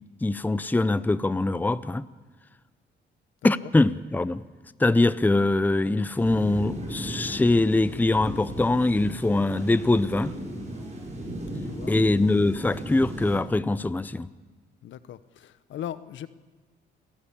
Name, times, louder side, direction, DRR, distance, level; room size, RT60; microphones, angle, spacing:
voice 1, 0.2-2.0 3.4-4.4 4.8-10.3 11.9-14.3, left 2 dB, 10° left, 0.6 m, -23 dB
sound 1, 6.2-13.4, right 1 dB, 35° right, 7.0 m, -36 dB
voice 2, 14.8-16.3, left 10 dB, 70° left, 0.9 m, -38 dB
27.5 x 13.0 x 8.6 m
cardioid pair, 90°, 20 cm